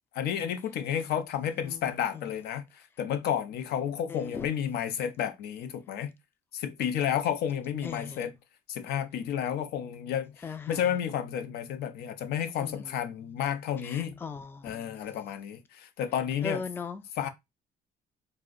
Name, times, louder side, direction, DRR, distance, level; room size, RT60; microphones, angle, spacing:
voice 1, 0.1-6.1 6.5-8.4 8.7-14.2 14.6-16.6 17.1-17.3, left 9 dB, 75° left, 0.5 m, -31 dB
voice 2, 4.1-4.5 7.8-8.2 10.4-10.8 12.6-12.8 13.9-14.9 16.4-17.0, left 5 dB, 15° left, 0.3 m, -38 dB
2.5 x 2.1 x 3.7 m
cardioid pair, 110°, 17 cm